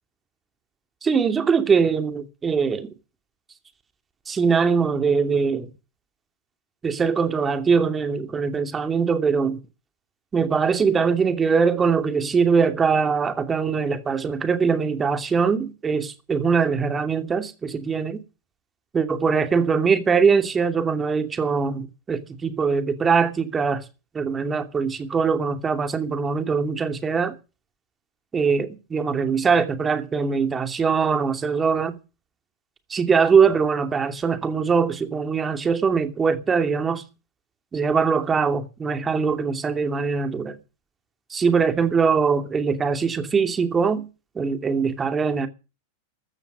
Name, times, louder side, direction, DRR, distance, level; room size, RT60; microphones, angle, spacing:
voice 1, 1.0-2.9 4.3-5.7 6.8-9.6 10.3-18.2 18.9-23.8 24.1-27.3 28.3-31.9 32.9-37.0 37.7-40.5 41.3-44.1 44.3-45.5, right 5 dB, 20° right, 2.6 m, -22 dB
14.5 x 13.5 x 5.4 m
figure-of-eight pair, 90°, 0 cm